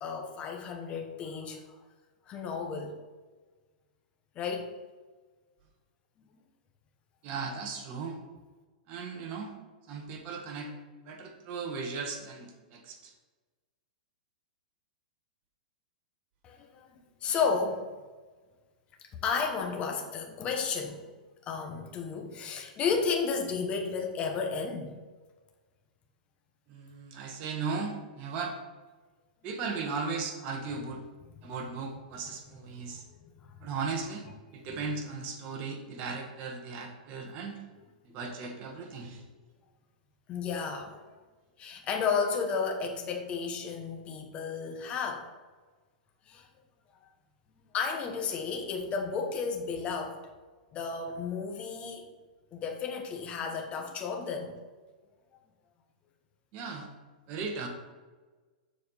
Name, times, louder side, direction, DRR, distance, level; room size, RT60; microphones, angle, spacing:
voice 1, 0.0-1.6 2.3-3.0 4.3-4.7 16.4-16.9 17.2-17.9 19.1-21.1 21.5-24.9 33.2-33.6 40.3-41.2 41.6-45.3 46.3-46.5 47.7-50.2 50.7-52.0 52.5-54.5, left 5 dB, 25° left, 3 dB, 1.1 m, -33 dB
voice 2, 7.2-8.2 8.9-9.5 9.9-10.7 11.0-13.1 26.7-28.5 29.4-31.0 31.4-33.0 33.6-34.3 34.5-37.6 38.0-39.2 56.5-56.9 57.3-57.7, right 4 dB, 35° right, 2 dB, 1.5 m, -37 dB
7.1 x 4.6 x 5.6 m, 1.3 s
hypercardioid pair, 145°, 5 cm